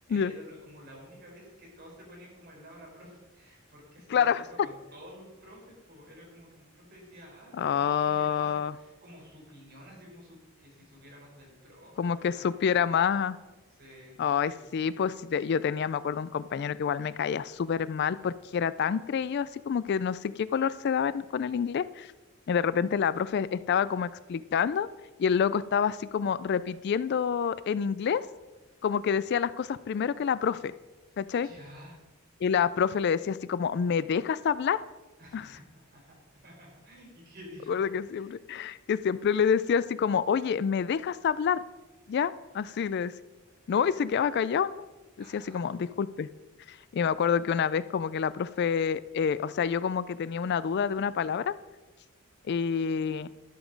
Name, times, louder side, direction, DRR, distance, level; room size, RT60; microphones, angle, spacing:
voice 1, 0.1-12.7 13.8-14.7 31.3-32.0 35.2-37.8 38.1-38.4 45.2-45.7, equal, 50° right, -2 dB, 4.2 m, -51 dB
voice 2, 4.1-4.4 7.6-8.7 12.0-13.4 14.2-22.1 22.5-24.9 25.2-28.2 28.8-30.7 31.2-31.5 32.4-34.8 35.3-35.5 37.7-41.6 42.1-43.1 43.7-44.9 45.3-46.3 46.7-51.5 52.5-53.3, left 7 dB, 50° left, 17 dB, 0.3 m, -27 dB
12.0 x 7.2 x 5.2 m, 1.1 s
head